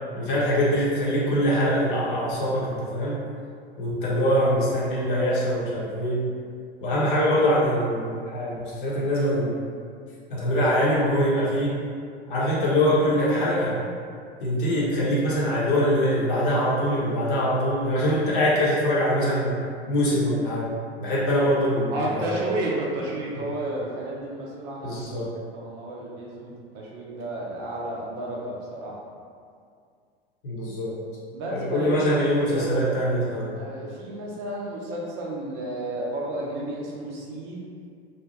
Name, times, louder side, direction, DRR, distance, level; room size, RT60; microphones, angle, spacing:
voice 1, 0.1-3.2 3.8-6.3 6.8-9.5 10.3-11.7 12.3-13.7 14.4-19.5 19.9-20.7 21.0-22.5 24.8-25.3 30.4-31.0 31.4-33.5, equal, 55° left, -7 dB, 1.0 m, -23 dB
voice 2, 21.9-25.2 25.5-28.9 31.3-33.0 33.5-37.6, right 1 dB, 35° right, -4 dB, 0.5 m, -32 dB
2.7 x 2.2 x 3.0 m, 2.2 s
figure-of-eight pair, 85°, 31 cm